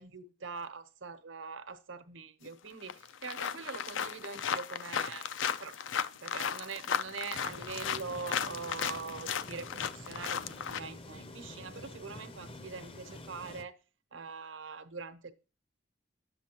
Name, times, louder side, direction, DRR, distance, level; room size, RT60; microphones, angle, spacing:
voice 1, 0.0-5.3 5.6-5.8 6.2-13.7 14.1-15.3, right 4 dB, 90° right, 1.0 m, -43 dB
sound 1, 2.4-2.5 2.9-10.8, left 7 dB, 85° left, 0.5 m, -35 dB
sound 2, 7.3-13.6, left 2 dB, 30° left, 0.6 m, -48 dB
10.5 x 7.3 x 2.9 m
head